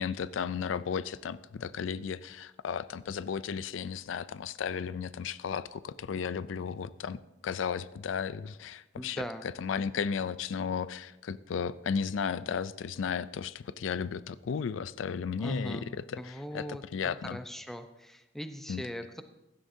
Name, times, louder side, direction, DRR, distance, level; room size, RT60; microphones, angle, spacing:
voice 1, 0.0-15.8 16.1-17.4 18.7-18.8, left 6 dB, 85° left, 16 dB, 0.4 m, -34 dB
voice 2, 9.0-9.5 15.4-15.9 16.2-16.8 17.2-19.2, equal, ahead, 8 dB, 0.6 m, -39 dB
16.0 x 11.5 x 2.7 m, 0.97 s
head